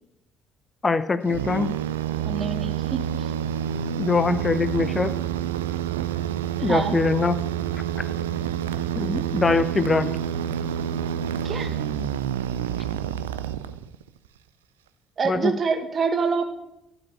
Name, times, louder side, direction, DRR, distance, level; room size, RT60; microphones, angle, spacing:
voice 1, 0.8-1.7 4.0-5.1 6.6-7.4 8.9-10.1 15.3-15.5, left 4 dB, 25° left, 13 dB, 0.6 m, -23 dB
sound 1, 1.3-14.1, right 9 dB, 75° right, 0.4 m, -28 dB
voice 2, 2.2-3.3 6.6-7.0 11.4-11.7 15.2-16.4, right 5 dB, 40° right, 6 dB, 1.5 m, -26 dB
13.5 x 5.2 x 7.2 m, 0.86 s
figure-of-eight pair, 50°, 0 cm